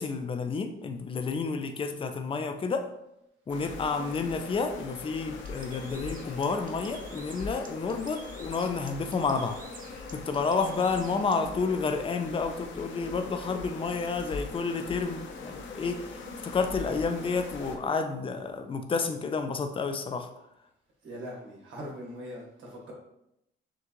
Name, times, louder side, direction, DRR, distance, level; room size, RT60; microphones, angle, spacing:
voice 1, 0.0-2.9 3.5-9.6 10.1-16.1 16.4-20.3, left 4 dB, 25° left, 7 dB, 0.5 m, -30 dB
sound 1, 3.5-17.8, left 4 dB, 70° left, 0.7 m, -42 dB
Bird, 5.4-11.4, right 4 dB, 45° right, 0.7 m, -50 dB
voice 2, 21.0-22.9, equal, 75° right, -2 dB, 1.7 m, -41 dB
6.3 x 2.4 x 3.0 m, 0.82 s
cardioid pair, 90°, 20 cm